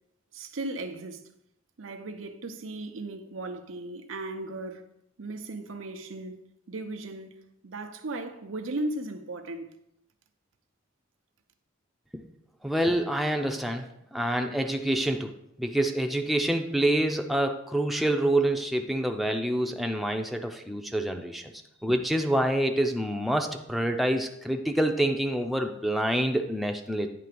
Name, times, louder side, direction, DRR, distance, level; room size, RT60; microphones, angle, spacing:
voice 1, 0.3-1.2 1.8-4.9 5.2-6.4 6.7-7.4 7.6-9.7, right 2 dB, 90° right, 0.8 m, -36 dB
voice 2, 12.6-13.8 14.1-15.3 15.6-21.4 21.8-27.1, right 1 dB, ahead, 0.5 m, -27 dB
9.3 x 3.4 x 6.8 m
head